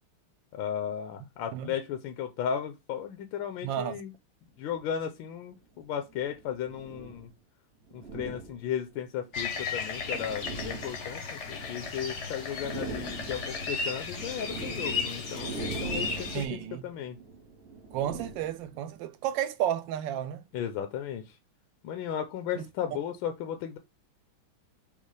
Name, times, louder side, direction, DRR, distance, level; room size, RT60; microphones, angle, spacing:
voice 1, 0.5-4.1 4.6-7.3 7.9-13.4 13.7-17.2 20.5-21.4 21.8-23.8, left 9 dB, 75° left, 1.3 m, -35 dB
voice 2, 3.6-4.0 16.3-16.9 17.9-20.4 22.6-22.7, right 10 dB, 75° right, 1.2 m, -32 dB
sound 1, 4.6-4.8 5.8-7.3 7.9-9.0 9.7-12.1 12.4-19.0, right 3 dB, 55° right, 0.7 m, -41 dB
sound 2, 9.3-16.4, left 4 dB, 55° left, 0.8 m, -35 dB
5.4 x 2.0 x 4.7 m
omnidirectional pair, 2.3 m